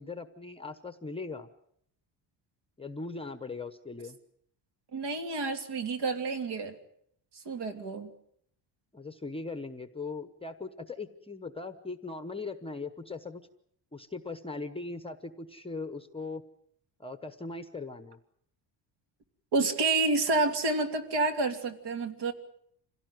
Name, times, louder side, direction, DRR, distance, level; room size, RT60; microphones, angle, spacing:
voice 1, 0.0-1.5 2.8-4.2 8.9-13.4 13.9-16.4 17.0-18.2, left 3 dB, 10° left, 9 dB, 0.9 m, -39 dB
voice 2, 4.9-6.7 7.4-8.1 19.5-22.3, right 3 dB, 55° right, 6 dB, 3.0 m, -29 dB
26.5 x 17.0 x 9.2 m, 0.70 s
cardioid pair, 170°, 47 cm